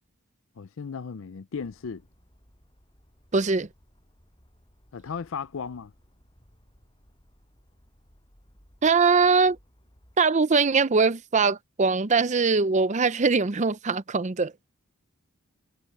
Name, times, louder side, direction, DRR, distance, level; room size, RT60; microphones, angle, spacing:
voice 1, 0.6-2.0 4.9-5.9, left 6 dB, 70° left, 0.5 m, -35 dB
sound 1, 1.5-10.3, equal, 25° left, 7.2 m, -60 dB
voice 2, 3.3-3.7 8.8-9.6 10.2-14.5, right 4 dB, 35° right, 0.6 m, -22 dB
head